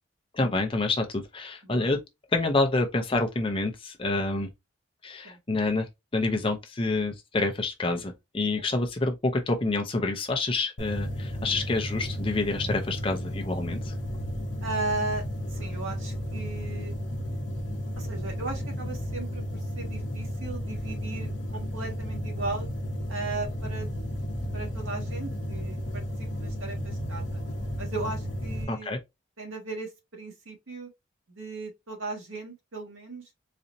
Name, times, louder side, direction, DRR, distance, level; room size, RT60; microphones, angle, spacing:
voice 1, 0.3-2.0 2.3-4.5 5.0-5.9 6.1-13.9 28.7-29.0, left 2 dB, 25° left, 0.6 m, -27 dB
sound 1, 10.8-28.6, equal, 60° left, 0.8 m, -33 dB
voice 2, 14.6-15.2 15.5-16.9 18.0-22.7 23.1-23.9 24.5-26.0 26.4-27.4 27.7-28.9 29.4-30.9 31.3-33.2, right 3 dB, 75° right, 1.5 m, -36 dB
4.1 x 2.7 x 2.5 m
head